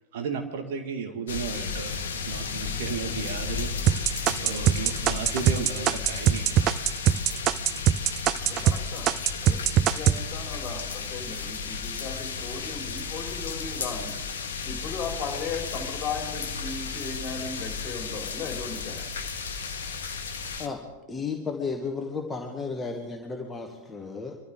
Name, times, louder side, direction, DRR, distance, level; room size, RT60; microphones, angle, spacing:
voice 1, 0.1-4.0 4.4-6.6, right 5 dB, 55° right, 5 dB, 1.8 m, -34 dB
sound 1, 1.3-20.7, left 5 dB, 65° left, 1.3 m, -34 dB
sound 2, 3.9-8.8 9.1-10.2, right 11 dB, 35° right, 0.5 m, -21 dB
voice 2, 8.4-9.2 9.4-14.1 14.6-19.0, left 5 dB, 30° left, 3 dB, 3.0 m, -37 dB
voice 3, 21.1-24.4, left 4 dB, 15° left, 2 dB, 1.4 m, -33 dB
24.5 x 13.5 x 3.7 m, 1.2 s
figure-of-eight pair, 90°, 0 cm